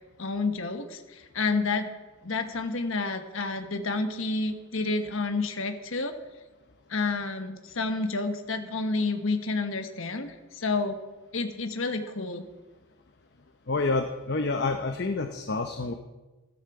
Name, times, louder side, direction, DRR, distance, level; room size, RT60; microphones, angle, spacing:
voice 1, 0.2-1.9 2.2-6.1 6.9-11.0 11.3-12.5, left 3 dB, 65° left, 7 dB, 1.3 m, -29 dB
voice 2, 13.7-15.9, left 3 dB, 50° left, 6 dB, 0.7 m, -28 dB
14.0 x 13.0 x 4.8 m, 1.2 s
head